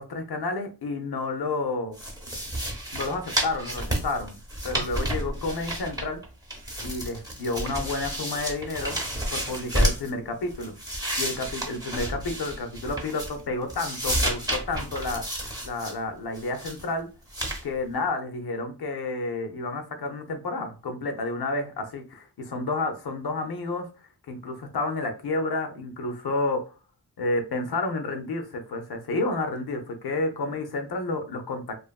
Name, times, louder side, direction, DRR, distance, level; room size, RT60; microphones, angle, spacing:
voice 1, 0.0-2.0 2.9-4.4 4.6-6.2 6.8-9.0 9.3-10.7 11.2-15.2 15.6-17.1 17.6-23.9 24.3-26.7 27.2-31.8, left 2 dB, 65° left, 5 dB, 0.6 m, -30 dB
sound 1, 1.9-6.2 6.5-10.1 10.5-13.4 13.7-15.9 16.3-16.8 17.3-17.6, right 1 dB, 10° right, 0.8 m, -30 dB
2.6 x 2.5 x 2.2 m, 0.33 s
wide cardioid pair, 85°, 41 cm